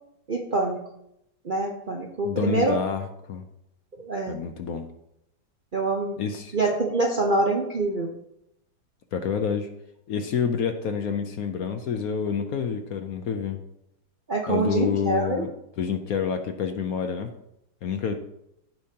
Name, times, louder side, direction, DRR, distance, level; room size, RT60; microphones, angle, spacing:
voice 1, 0.3-0.8 1.4-2.8 4.0-4.4 5.7-6.2 6.5-8.1 14.3-15.4, right 2 dB, 50° right, 0 dB, 0.6 m, -25 dB
voice 2, 2.2-3.4 4.3-4.9 6.2-6.6 9.1-9.7 10.1-13.6 14.5-15.5 15.8-17.3 17.8-18.1, left 7 dB, 65° left, 6 dB, 1.0 m, -28 dB
15.0 x 5.1 x 2.8 m, 0.81 s
omnidirectional pair, 2.0 m